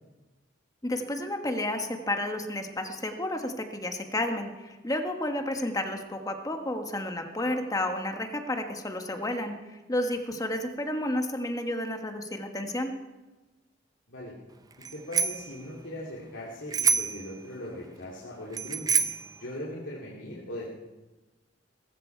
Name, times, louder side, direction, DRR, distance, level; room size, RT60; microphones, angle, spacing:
voice 1, 0.8-9.5 9.9-12.9, left 1 dB, 20° left, 5 dB, 1.4 m, -31 dB
voice 2, 14.8-19.0 19.4-20.7, left 1 dB, 85° left, -5 dB, 2.7 m, -39 dB
Bicycle bell, 14.8-15.5 16.7-17.3 18.5-19.3, right 6 dB, 20° right, 0.6 m, -26 dB
19.5 x 15.0 x 4.6 m, 1.2 s
head